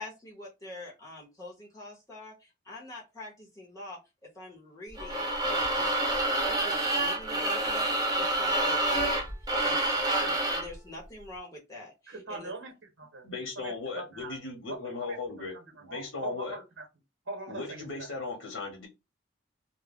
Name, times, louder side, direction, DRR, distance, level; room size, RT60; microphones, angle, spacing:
voice 1, 0.0-10.0 10.5-12.5, left 2 dB, 15° left, 0.9 m, -45 dB
sound 1, 5.0-10.7, right 1 dB, 20° right, 0.6 m, -28 dB
voice 2, 10.1-10.5 12.1-13.3 13.6-14.4 14.7-15.2 15.5-16.9 17.2-18.1, right 3 dB, 75° right, 1.1 m, -41 dB
voice 3, 13.2-16.6 17.5-18.9, left 3 dB, 90° left, 0.9 m, -37 dB
2.3 x 2.1 x 3.6 m
head